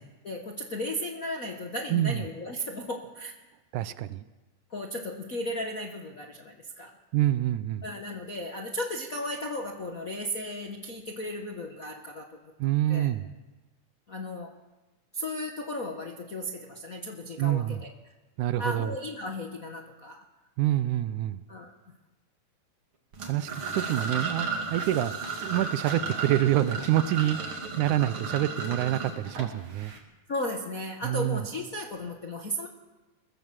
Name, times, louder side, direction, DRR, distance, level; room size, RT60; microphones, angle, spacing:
voice 1, 0.2-3.3 4.7-7.0 7.8-12.4 12.9-13.1 14.1-14.5 15.1-17.9 18.6-20.2 21.5-21.7 30.3-32.7, left 1 dB, 55° left, 3 dB, 0.9 m, -35 dB
voice 2, 1.9-2.2 3.7-4.2 7.1-7.8 12.6-13.3 17.4-17.8 18.4-19.0 20.6-21.4 23.2-25.1 25.4-29.9 31.0-31.4, right 13 dB, 80° right, 14 dB, 2.2 m, -27 dB
sound 1, 23.1-30.0, right 4 dB, 45° right, 3.0 m, -34 dB
22.0 x 15.5 x 7.5 m, 1.2 s
omnidirectional pair, 3.6 m